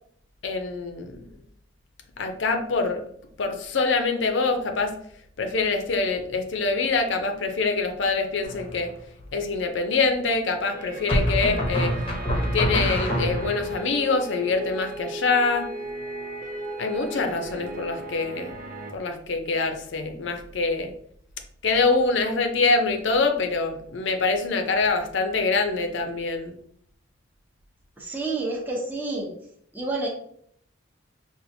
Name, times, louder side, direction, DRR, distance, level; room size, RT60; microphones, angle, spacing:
voice 1, 0.4-1.4 2.2-3.0 3.4-5.0 5.4-8.9 9.3-11.9 12.3-15.7 16.8-18.6 18.9-20.9 21.6-26.6, left 4 dB, 70° left, 5 dB, 0.6 m, -25 dB
sound 1, 8.4-9.0 11.1-13.8, equal, 30° left, 0.8 m, -26 dB
sound 2, 10.7-18.9, right 2 dB, 45° right, 0.5 m, -37 dB
voice 2, 28.0-29.3 29.7-30.1, right 2 dB, 10° right, -4 dB, 0.8 m, -29 dB
5.5 x 2.5 x 2.6 m, 0.65 s
head